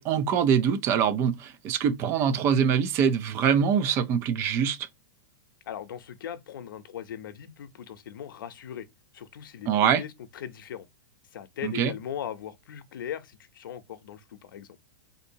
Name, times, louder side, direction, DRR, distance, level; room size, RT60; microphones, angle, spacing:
voice 1, 0.0-4.9 9.7-10.0 11.6-11.9, right 7 dB, 25° right, 0.3 m, -24 dB
voice 2, 5.7-8.9 9.1-10.9 11.3-14.8, left 9 dB, 85° left, 0.6 m, -39 dB
3.7 x 2.6 x 2.7 m
supercardioid pair, 160°, 11 cm